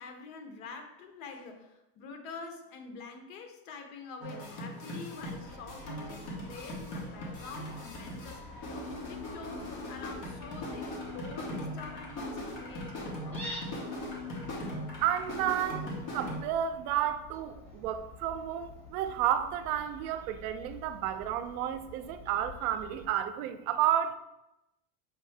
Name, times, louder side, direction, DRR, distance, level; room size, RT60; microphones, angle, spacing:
voice 1, 0.0-8.4 9.1-13.5, left 4 dB, 70° left, 5 dB, 0.9 m, -46 dB
sound 1, 4.2-16.4, left 1 dB, 35° left, 1.0 m, -40 dB
Fowl, 5.2-23.1, left 1 dB, 5° left, 0.5 m, -49 dB
voice 2, 15.0-24.2, right 10 dB, 70° right, 11 dB, 0.5 m, -31 dB
5.9 x 2.7 x 3.3 m, 0.90 s
cardioid pair, 170°, 45 cm